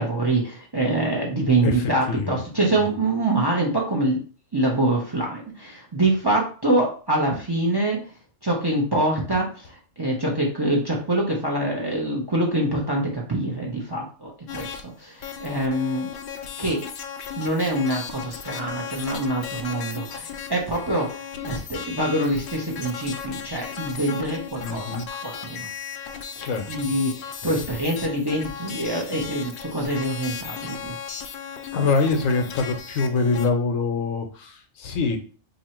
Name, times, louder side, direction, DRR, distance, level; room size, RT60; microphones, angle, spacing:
voice 1, 0.0-4.2 4.5-16.1 16.6-16.8 17.4-25.7 26.4-31.0, right 1 dB, 25° right, -1 dB, 0.6 m, -25 dB
voice 2, 2.1-2.4 24.6-25.0 26.4-26.7 31.7-35.2, left 4 dB, 80° left, 6 dB, 1.1 m, -24 dB
sound 1, 14.5-14.8 15.2-33.5, left 7 dB, 60° left, 0.6 m, -36 dB
2.8 x 2.7 x 4.3 m, 0.38 s
omnidirectional pair, 1.3 m